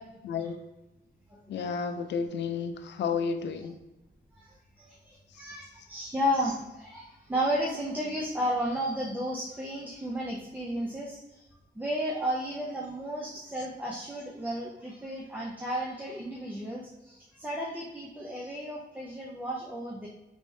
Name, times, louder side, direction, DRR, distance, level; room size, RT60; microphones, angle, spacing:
voice 1, 0.2-0.6 1.5-3.8, left 6 dB, 85° left, 8 dB, 0.4 m, -31 dB
voice 2, 4.4-11.5 11.7-20.1, equal, 10° right, -3 dB, 0.5 m, -33 dB
3.4 x 2.7 x 3.2 m, 0.99 s
wide cardioid pair, 150°, 18 cm